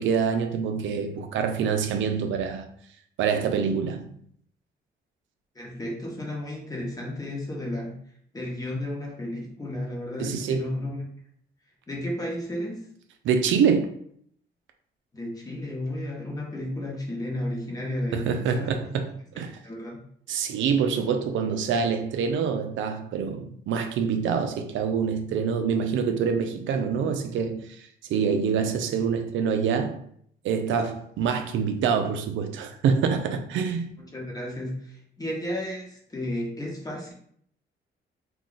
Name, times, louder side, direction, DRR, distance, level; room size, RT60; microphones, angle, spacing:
voice 1, 0.0-2.6 3.2-4.1 10.2-10.7 13.2-14.0 18.1-19.1 19.4-19.6 20.3-30.0 30.4-33.9, right 6 dB, 75° right, 0.4 m, -26 dB
voice 2, 5.5-8.0 8.3-11.1 11.9-12.9 15.1-19.0 19.6-20.0 34.1-37.1, left 1 dB, 20° left, 0.9 m, -33 dB
2.3 x 2.3 x 3.8 m
cardioid pair, 90°, 20 cm